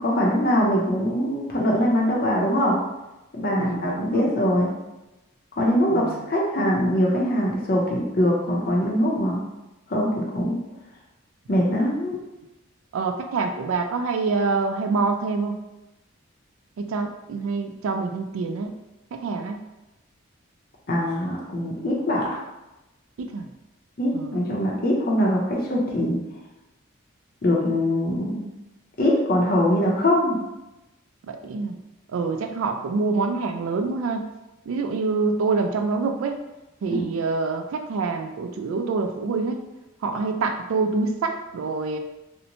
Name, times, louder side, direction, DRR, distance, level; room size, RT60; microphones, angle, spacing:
voice 1, 0.0-2.8 3.3-4.7 5.6-9.4 9.9-10.6 11.5-12.2 20.9-22.4 24.0-26.2 27.4-28.4 29.0-30.4 36.9-37.0, equal, 45° left, -2 dB, 0.6 m, -22 dB
voice 2, 3.5-4.3 5.9-6.3 12.9-15.6 16.8-18.8 19.1-19.6 23.2-23.5 24.1-24.7 31.3-31.8 32.1-34.3 34.7-36.4 36.8-39.6 40.0-42.0, right 4 dB, 80° right, 5 dB, 0.3 m, -26 dB
2.9 x 2.0 x 2.6 m, 0.98 s
head